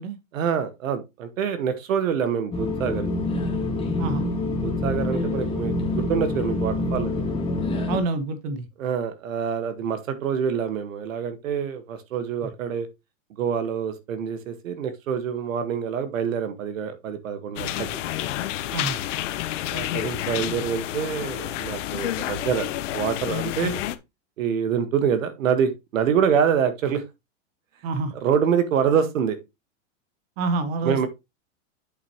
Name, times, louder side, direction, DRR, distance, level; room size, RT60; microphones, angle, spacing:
voice 1, 0.3-3.1 4.6-7.3 8.8-12.9 13.3-17.9 19.7-22.7 22.9-23.8 24.4-27.0 28.2-29.4 30.8-31.1, right 7 dB, 80° right, 1.7 m, -26 dB
sound 1, 2.5-8.0, left 2 dB, 15° left, 1.7 m, -26 dB
voice 2, 4.0-4.3 7.9-8.7 12.4-12.5 18.7-19.0 27.8-28.1 30.4-31.1, right 3 dB, 50° right, 1.7 m, -27 dB
sound 2, 17.6-24.0, left 13 dB, 65° left, 1.0 m, -29 dB
8.1 x 6.2 x 3.1 m
supercardioid pair, 135°, 39 cm